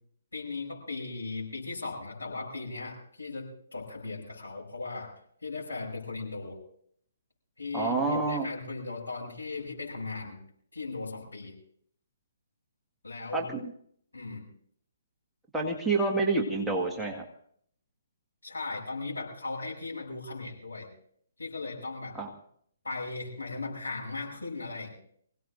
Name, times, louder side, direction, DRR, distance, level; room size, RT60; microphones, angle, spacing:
voice 1, 0.3-5.1 5.4-6.6 7.6-10.4 10.7-11.5 13.0-13.5 14.1-14.4 18.4-20.9 21.4-22.2 22.8-24.9, left 3 dB, 75° left, 0 dB, 7.3 m, -37 dB
voice 2, 7.7-8.5 13.3-13.4 15.5-17.2 22.1-22.3, right 3 dB, 5° right, -1 dB, 1.8 m, -28 dB
26.0 x 17.0 x 2.7 m, 0.62 s
figure-of-eight pair, 130°, 0 cm